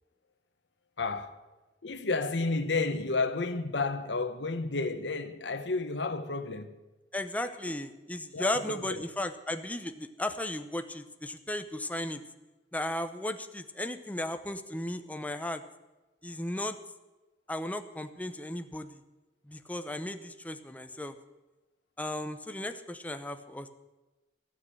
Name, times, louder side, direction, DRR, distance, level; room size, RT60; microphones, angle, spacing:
voice 1, 1.0-1.3 1.8-6.7 7.4-7.8 8.3-9.0, left 3 dB, 80° left, 1.1 m, -31 dB
voice 2, 7.1-12.2 12.7-15.6 16.2-16.8 17.5-19.0 19.5-21.2 22.0-23.7, left 1 dB, 10° left, 0.8 m, -35 dB
15.5 x 6.6 x 8.8 m
head